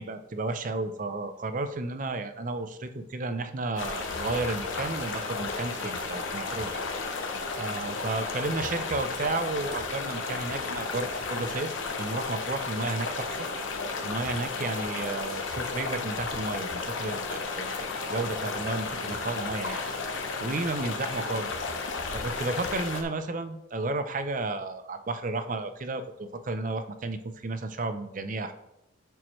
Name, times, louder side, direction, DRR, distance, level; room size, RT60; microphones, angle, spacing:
voice 1, 0.0-7.3 7.6-11.7 12.0-13.4 14.0-19.8 20.4-21.5 22.1-28.5, right 3 dB, 40° right, 9 dB, 0.5 m, -33 dB
sound 1, 3.8-23.0, left 4 dB, 80° left, 0.9 m, -33 dB
10.5 x 4.6 x 3.1 m, 0.88 s
head